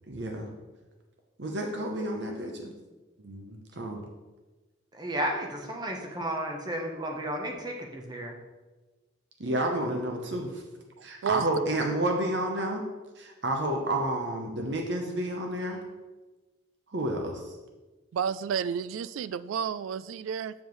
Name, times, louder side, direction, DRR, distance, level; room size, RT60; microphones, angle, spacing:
voice 1, 0.1-0.5 1.4-2.7 3.2-4.0 9.4-10.6 11.0-12.8 13.2-15.8 16.9-17.5, right 1 dB, 60° right, 2 dB, 0.9 m, -30 dB
voice 2, 4.9-8.4, right 1 dB, 20° right, 1 dB, 0.9 m, -33 dB
voice 3, 11.0-11.5 18.1-20.5, right 7 dB, 80° right, 17 dB, 0.3 m, -31 dB
7.3 x 7.1 x 3.1 m, 1.2 s
head